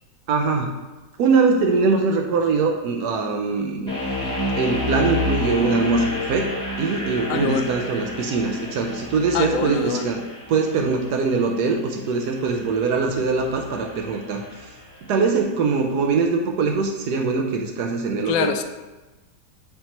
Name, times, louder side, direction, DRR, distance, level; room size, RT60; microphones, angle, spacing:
voice 1, 0.3-0.7 1.2-3.9 4.6-6.5 6.8-10.2 10.5-14.7 15.0-18.5, right 4 dB, 80° right, 2 dB, 1.2 m, -22 dB
sound 1, 3.9-14.9, left 2 dB, 40° left, 1.9 m, -30 dB
voice 2, 7.3-7.7 9.3-10.1 18.3-18.6, left 8 dB, 70° left, 8 dB, 0.9 m, -24 dB
8.6 x 3.0 x 4.3 m, 1.1 s
omnidirectional pair, 1.8 m